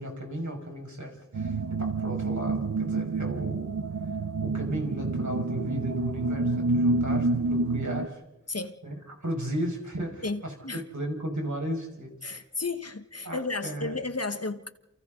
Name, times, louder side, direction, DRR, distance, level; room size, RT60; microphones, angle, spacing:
voice 1, 0.0-3.7 4.4-8.2 8.8-12.4 13.2-13.9, equal, 70° right, 5.6 m, -35 dB
sound 1, 1.3-8.1, right 3 dB, 90° right, 0.8 m, -28 dB
voice 2, 10.2-10.8 12.2-14.7, left 3 dB, 55° left, 1.4 m, -33 dB
28.5 x 28.5 x 3.9 m
wide cardioid pair, 45°, 30 cm